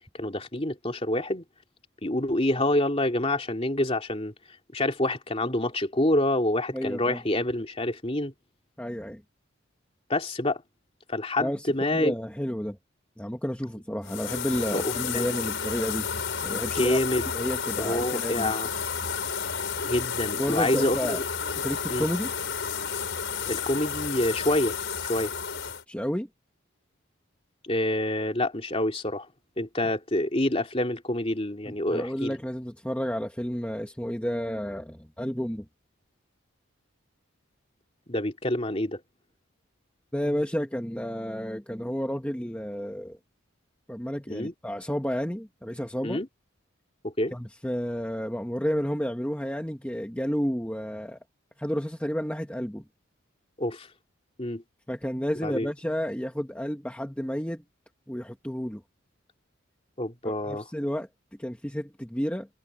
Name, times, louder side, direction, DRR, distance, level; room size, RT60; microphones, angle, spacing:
voice 1, 0.2-1.4 2.0-4.3 4.7-8.3 10.1-10.6 11.1-12.1 14.7-15.2 16.7-17.3 17.8-18.7 19.8-21.2 21.9-22.1 23.5-24.8 25.0-25.3 27.6-29.3 29.6-32.3 38.1-39.0 44.3-44.5 46.0-46.3 47.0-47.3 53.6-53.9 54.4-54.6 55.4-55.7 60.0-60.7, left 1 dB, 30° left, 3.0 m, -27 dB
voice 2, 6.7-7.2 8.8-9.2 11.4-12.8 13.2-16.1 16.4-17.0 17.3-18.5 20.4-21.2 21.6-22.3 25.9-26.3 31.6-35.6 40.1-43.2 43.9-46.2 47.3-51.2 51.6-52.8 54.9-57.6 58.1-58.8 60.2-61.1 61.4-62.5, equal, 5° left, 1.4 m, -31 dB
sound 1, 14.0-25.8, left 6 dB, 60° left, 5.4 m, -31 dB
head